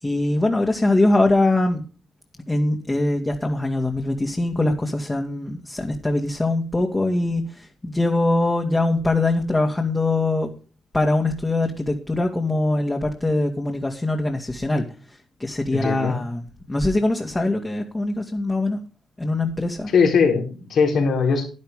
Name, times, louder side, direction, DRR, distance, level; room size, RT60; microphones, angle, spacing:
voice 1, 0.0-1.8 2.5-10.5 10.9-14.9 15.4-16.4 16.7-18.8 19.2-19.9, left 2 dB, 20° left, 2 dB, 2.6 m, -22 dB
voice 2, 15.7-16.1 19.9-21.5, left 5 dB, 65° left, 3 dB, 4.5 m, -20 dB
12.0 x 11.5 x 3.8 m, 0.35 s
hypercardioid pair, 45°, 0 cm